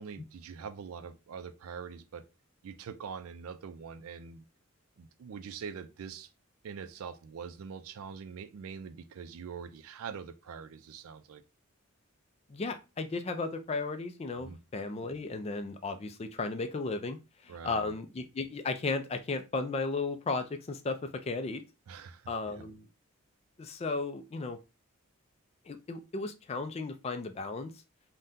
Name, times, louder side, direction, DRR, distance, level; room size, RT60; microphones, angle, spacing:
voice 1, 0.0-2.2 2.6-4.4 5.0-6.3 6.6-11.4 14.4-14.6 17.5-17.9 21.9-22.3, right 6 dB, 85° right, 0.4 m, -43 dB
voice 2, 12.5-17.2 17.4-21.6 22.3-22.9 23.6-24.6 25.7-27.7, left 3 dB, 30° left, 0.3 m, -35 dB
3.6 x 2.2 x 2.6 m
head